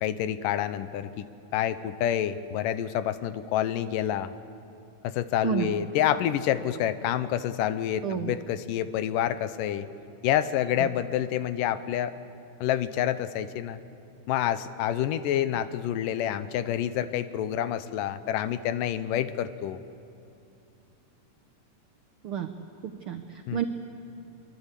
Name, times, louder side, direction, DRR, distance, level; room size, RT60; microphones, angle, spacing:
voice 1, 0.0-1.3 1.5-4.3 5.0-9.9 10.2-12.1 12.6-13.8 14.3-19.8 23.5-23.6, left 11 dB, 80° left, 13 dB, 2.4 m, -28 dB
voice 2, 8.0-8.3 10.8-10.9 22.2-22.5 22.8-23.6, right 10 dB, 90° right, 6 dB, 1.1 m, -30 dB
24.0 x 23.5 x 8.3 m, 2.6 s
omnidirectional pair, 3.8 m